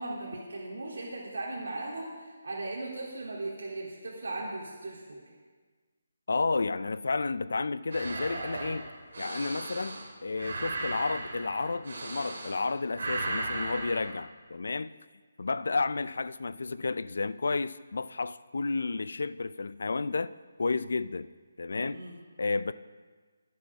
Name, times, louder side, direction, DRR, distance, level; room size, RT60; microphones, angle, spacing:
voice 1, 0.0-5.2 21.9-22.2, right 2 dB, 80° right, 2.8 m, -38 dB
voice 2, 6.3-8.9 9.2-14.9 15.4-20.3 20.6-21.3 21.6-22.0 22.4-22.7, left 3 dB, 60° left, 0.4 m, -31 dB
sound 1, 7.9-12.7 12.9-14.1, right 2 dB, 50° right, 2.1 m, -36 dB
21.0 x 7.7 x 3.6 m
hypercardioid pair, 180°, 0 cm